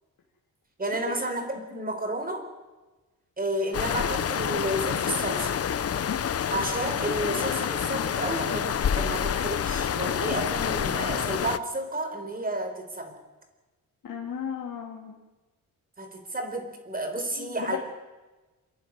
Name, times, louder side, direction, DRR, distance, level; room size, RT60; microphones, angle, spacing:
voice 1, 0.8-2.4 3.4-5.5 6.5-13.1 16.0-17.8, right 1 dB, 25° right, 5 dB, 4.3 m, -31 dB
sound 1, 3.7-11.6, left 8 dB, 40° left, 0.8 m, -28 dB
voice 2, 14.0-15.2 17.4-17.8, left 8 dB, 65° left, -2 dB, 2.8 m, -34 dB
28.0 x 11.0 x 9.8 m, 1.2 s
cardioid pair, 130°, 35 cm